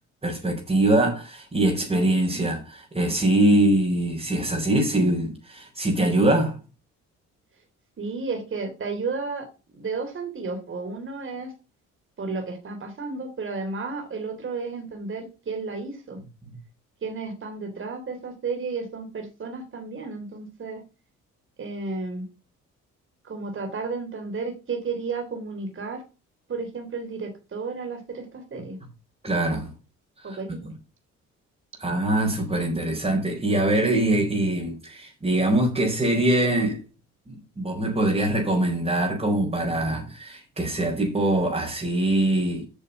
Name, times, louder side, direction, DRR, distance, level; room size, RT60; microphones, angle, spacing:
voice 1, 0.2-6.6 16.4-16.5 29.2-29.7 30.2-30.4 31.8-36.8 37.3-42.6, right 1 dB, 20° right, 5.0 m, -23 dB
voice 2, 8.0-9.5 9.7-11.5 12.2-16.2 17.0-20.8 21.6-22.2 23.2-26.0 26.5-28.8 30.2-30.6, right 4 dB, 40° right, 3.4 m, -32 dB
8.9 x 6.5 x 7.1 m
cardioid pair, 90°, 30 cm